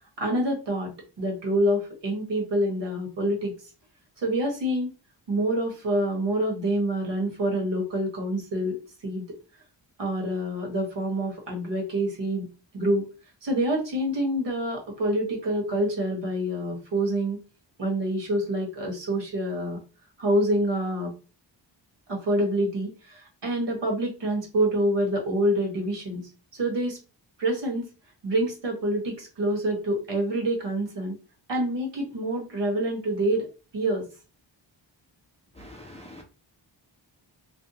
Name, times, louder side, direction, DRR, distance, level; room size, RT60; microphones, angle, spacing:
voice 1, 0.2-3.5 4.2-4.9 5.3-9.3 10.0-12.5 12.7-13.1 13.4-17.4 17.8-19.8 20.2-21.1 22.1-27.0 27.4-27.9 28.2-31.2 31.5-33.5 33.7-34.1, right 1 dB, 65° right, 0 dB, 1.1 m, -27 dB
voice 2, 35.6-36.2, left 1 dB, 15° left, 0 dB, 0.3 m, -44 dB
2.6 x 2.1 x 2.6 m, 0.32 s
wide cardioid pair, 150°, 46 cm